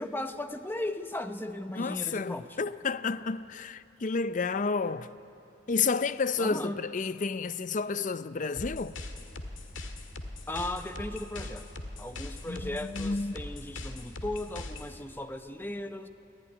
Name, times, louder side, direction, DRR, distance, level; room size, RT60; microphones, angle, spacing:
voice 1, 0.0-2.6 6.4-6.8 10.5-11.7 12.0-16.1, left 1 dB, 10° left, 0.8 m, -37 dB
voice 2, 1.7-5.1 5.7-8.9 12.5-13.4, left 4 dB, 40° left, 0.5 m, -31 dB
sound 1, 8.6-14.9, left 2 dB, 85° left, 1.8 m, -41 dB
23.5 x 15.0 x 9.9 m
head